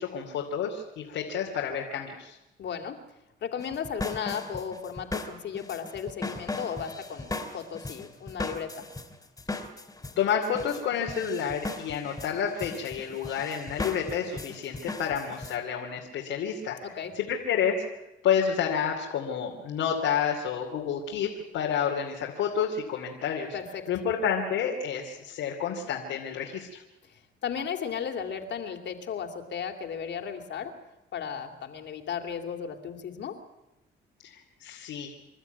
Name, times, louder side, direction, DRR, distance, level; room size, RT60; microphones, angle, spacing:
voice 1, 0.0-2.4 10.2-16.8 17.1-17.8 18.2-23.5 23.9-26.8 34.3-35.1, left 7 dB, 90° left, 0 dB, 2.9 m, -29 dB
voice 2, 2.6-3.0 3.4-8.8 16.8-17.1 23.5-23.8 27.4-30.7 31.1-33.4, left 7 dB, 65° left, 5 dB, 2.8 m, -35 dB
sound 1, 3.6-15.5, left 2 dB, 15° left, 2.9 m, -37 dB
27.5 x 13.0 x 9.4 m, 0.98 s
cardioid pair, 90°, 20 cm